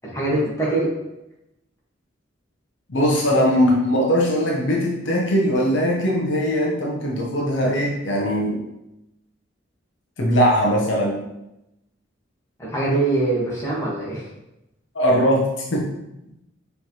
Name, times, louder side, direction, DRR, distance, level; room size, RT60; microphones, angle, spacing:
voice 1, 0.0-0.9 12.6-14.3, right 2 dB, 15° left, -6 dB, 1.2 m, -23 dB
voice 2, 2.9-8.6 10.2-11.2 14.9-15.9, equal, 65° left, -2 dB, 0.7 m, -20 dB
4.6 x 3.1 x 2.8 m, 0.88 s
head